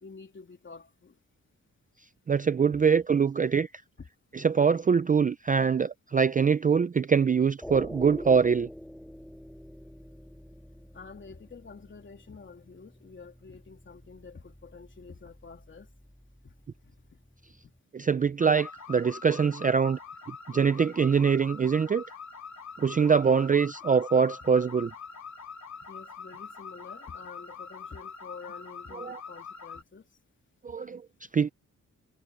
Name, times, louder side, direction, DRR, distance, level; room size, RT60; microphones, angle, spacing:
voice 1, 0.0-1.2 2.7-2.9 4.0-4.1 10.9-15.9 16.4-16.5 16.8-16.9 25.9-30.1, left 5 dB, 35° left, 3.3 m, -48 dB
voice 2, 2.3-3.7 4.3-8.7 17.9-20.0 20.5-22.0 22.8-24.9 28.9-29.2 30.6-31.0 31.3-31.5, right 6 dB, 25° right, 0.4 m, -24 dB
sound 1, 7.6-17.8, equal, ahead, 1.7 m, -46 dB
sound 2, 18.4-29.8, left 5 dB, 60° left, 2.7 m, -44 dB
wide cardioid pair, 160°, 32 cm